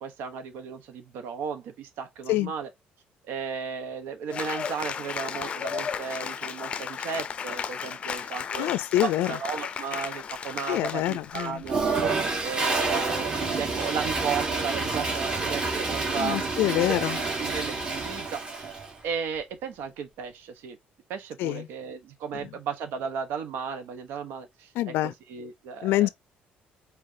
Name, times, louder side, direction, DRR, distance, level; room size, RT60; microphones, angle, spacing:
voice 1, 0.0-2.7 3.2-8.7 9.0-11.9 12.4-16.5 16.9-17.0 17.4-18.7 19.0-20.8 21.1-24.9 25.3-26.1, right 6 dB, 80° right, 1.0 m, -35 dB
Cheering / Applause, 4.3-11.8, left 7 dB, 35° left, 0.5 m, -34 dB
voice 2, 8.6-9.4 10.7-11.6 16.2-17.2 21.4-21.7 24.8-25.1 25.8-26.1, left 14 dB, 90° left, 0.4 m, -26 dB
Toilet flush, 11.6-18.9, right 3 dB, 25° right, 1.5 m, -28 dB
4.8 x 3.4 x 2.7 m
cardioid pair, 165°, 4 cm